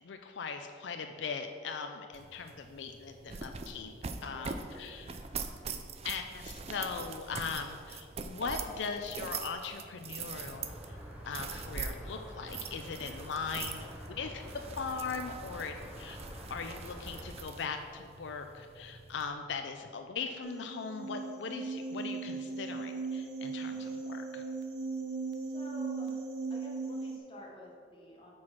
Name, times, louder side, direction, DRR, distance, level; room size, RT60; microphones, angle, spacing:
voice 1, 0.0-3.9 4.2-5.1 6.0-11.0 11.3-14.4 14.8-16.2 16.5-24.4, left 5 dB, 85° left, 6 dB, 0.4 m, -39 dB
sound 1, 2.1-19.3, right 5 dB, 35° right, 0.4 m, -43 dB
voice 2, 4.1-5.3 25.3-26.2 26.5-28.3, left 1 dB, 30° left, -2 dB, 1.2 m, -51 dB
sound 2, 10.4-17.3, equal, 5° right, 1.0 m, -47 dB
sound 3, 20.4-27.2, right 4 dB, 65° right, 0.7 m, -38 dB
6.1 x 4.7 x 5.8 m, 2.2 s
head